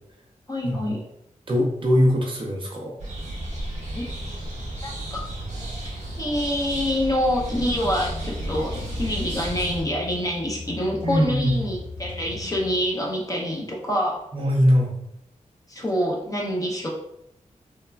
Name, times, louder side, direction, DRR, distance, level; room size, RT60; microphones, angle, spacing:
voice 1, 0.5-1.0 3.9-4.1 4.8-5.3 6.2-14.2 15.7-16.9, equal, 25° left, -1 dB, 0.4 m, -26 dB
voice 2, 1.5-2.9 11.0-11.6 14.3-14.9, equal, 40° right, -1 dB, 0.5 m, -21 dB
sound 1, 3.0-9.8, right 1 dB, 60° right, 0.9 m, -33 dB
sound 2, 7.1-13.1, left 3 dB, 75° left, 0.9 m, -37 dB
3.1 x 2.2 x 2.3 m, 0.77 s
wide cardioid pair, 170°, 13 cm